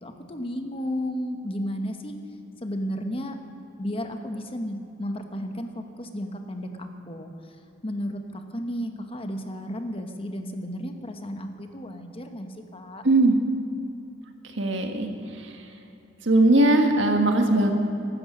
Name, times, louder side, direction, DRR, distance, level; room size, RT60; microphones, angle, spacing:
voice 1, 0.0-2.2 2.6-3.4 3.8-7.5 7.8-13.0, equal, 30° left, 6 dB, 1.1 m, -33 dB
voice 2, 13.0-13.3 14.6-15.1 16.2-17.7, right 2 dB, 70° right, 4 dB, 1.6 m, -19 dB
15.5 x 12.5 x 6.4 m, 2.8 s
head